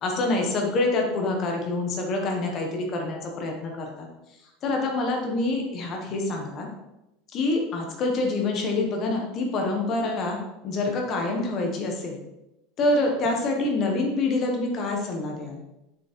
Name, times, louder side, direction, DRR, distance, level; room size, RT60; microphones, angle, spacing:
voice 1, 0.0-4.1 4.6-6.7 7.3-12.2 12.8-15.6, left 2 dB, 30° left, 2 dB, 1.4 m, -26 dB
7.0 x 6.3 x 4.6 m, 0.93 s
supercardioid pair, 180°, 0 cm